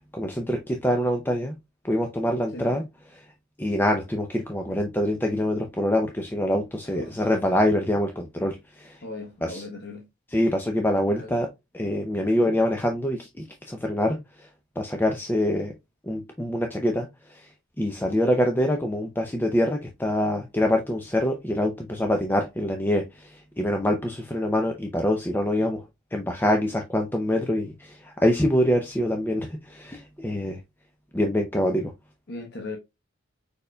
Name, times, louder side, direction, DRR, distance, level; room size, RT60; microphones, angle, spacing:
voice 1, 0.1-1.5 1.9-2.8 3.6-9.0 9.4-9.7 10.3-11.5 11.7-14.2 14.8-15.7 16.1-17.1 17.8-23.3 23.6-25.8 26.1-30.6 31.1-31.9, left 1 dB, 10° left, 0.5 m, -25 dB
voice 2, 9.0-10.0 11.1-11.4 12.4-12.5 32.3-32.8, left 2 dB, 50° left, 0.9 m, -38 dB
5.0 x 4.5 x 2.2 m
head